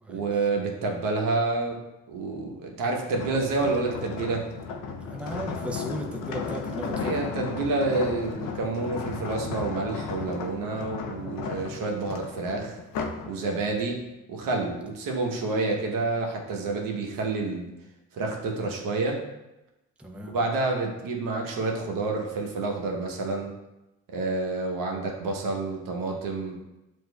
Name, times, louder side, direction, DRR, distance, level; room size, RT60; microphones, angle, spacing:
voice 1, 0.1-1.8 2.1-4.5 7.0-12.8 13.3-14.0 14.3-17.7 18.1-19.2 20.3-23.5 24.1-26.6, right 3 dB, 65° right, 1 dB, 0.9 m, -28 dB
sound 1, 3.1-13.3 13.7-14.0, left 5 dB, 65° left, 0.6 m, -35 dB
voice 2, 5.0-7.2 20.0-20.4, equal, 5° right, 2 dB, 0.6 m, -35 dB
7.6 x 2.6 x 2.3 m, 0.96 s
hypercardioid pair, 55°, 36 cm